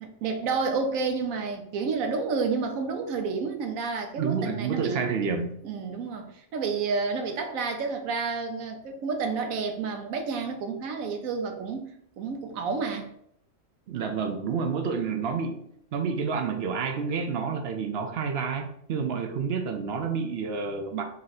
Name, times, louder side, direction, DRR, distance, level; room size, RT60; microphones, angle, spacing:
voice 1, 0.0-5.1 5.6-13.1, right 4 dB, 85° right, 4 dB, 1.1 m, -30 dB
voice 2, 4.2-5.6 13.9-15.6 15.9-21.0, right 5 dB, 65° right, 5 dB, 0.7 m, -29 dB
4.2 x 2.5 x 4.0 m, 0.72 s
omnidirectional pair, 1.4 m